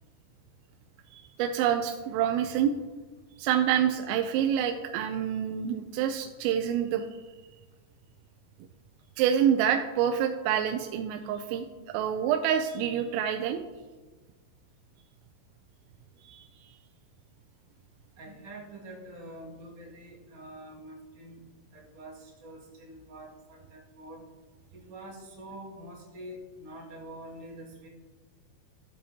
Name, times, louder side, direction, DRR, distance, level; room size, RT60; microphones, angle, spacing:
voice 1, 1.1-2.7 3.4-7.1 9.2-13.6 16.2-16.5, right 9 dB, 90° right, 6 dB, 3.2 m, -27 dB
voice 2, 18.2-21.4 21.7-24.3 24.8-27.9, right 1 dB, 45° right, -4 dB, 2.2 m, -46 dB
14.5 x 7.6 x 2.8 m, 1.3 s
omnidirectional pair, 5.7 m